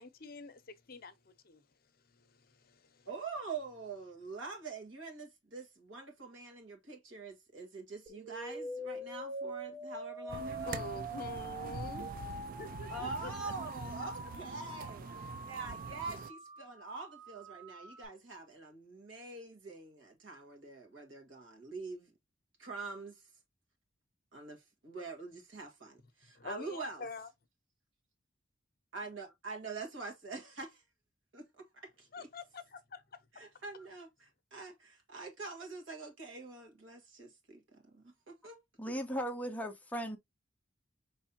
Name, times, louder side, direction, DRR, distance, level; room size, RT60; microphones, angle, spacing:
voice 1, 0.0-1.6 2.1-2.4 2.6-3.1 10.7-13.3 15.3-15.4 26.4-27.3 32.1-33.0 33.3-33.4, left 3 dB, 50° left, 0.7 m, -46 dB
voice 2, 3.1-10.8 12.9-15.1 15.4-22.1 22.6-23.3 24.3-27.1 28.9-30.8 31.3-32.3 33.3-38.6, right 4 dB, 80° right, 1.7 m, -45 dB
sound 1, 8.1-18.1, right 1 dB, 25° right, 1.4 m, -44 dB
sound 2, 10.3-16.3, right 5 dB, 45° right, 0.4 m, -44 dB
voice 3, 38.8-40.2, equal, 10° left, 0.6 m, -37 dB
5.4 x 3.2 x 2.7 m
head